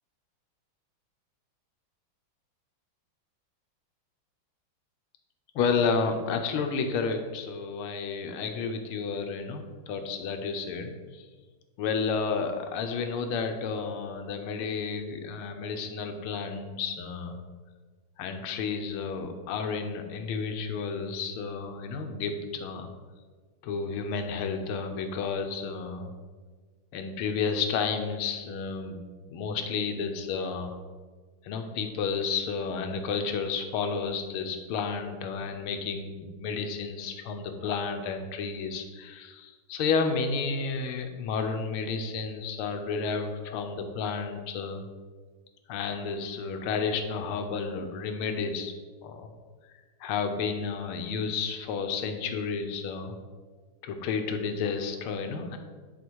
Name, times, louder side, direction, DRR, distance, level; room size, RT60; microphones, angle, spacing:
voice 1, 5.6-11.3 11.8-17.4 18.2-22.9 23.6-26.1 26.9-29.0 29.3-30.8 31.4-44.9 45.7-48.7 49.0-49.3 50.0-53.2 53.8-55.6, left 5 dB, 90° left, 6 dB, 1.7 m, -31 dB
9.5 x 4.2 x 4.6 m, 1.4 s
omnidirectional pair, 2.3 m